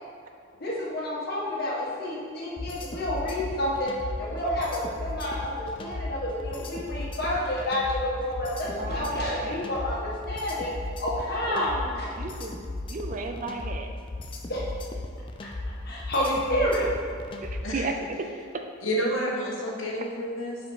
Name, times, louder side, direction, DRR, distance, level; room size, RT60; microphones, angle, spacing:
voice 1, 0.6-3.9 4.2-10.7 11.0-12.1 14.5-14.6 15.8-16.9, left 1 dB, 50° left, -5 dB, 1.5 m, -29 dB
sound 1, 2.6-17.8, left 2 dB, 25° left, 0.4 m, -36 dB
voice 2, 8.7-9.6 11.5-12.5 12.9-13.9 17.4-18.3, right 3 dB, 40° right, 5 dB, 0.4 m, -34 dB
voice 3, 18.8-20.6, equal, 70° left, -3 dB, 1.2 m, -29 dB
6.3 x 4.2 x 4.7 m, 2.3 s
head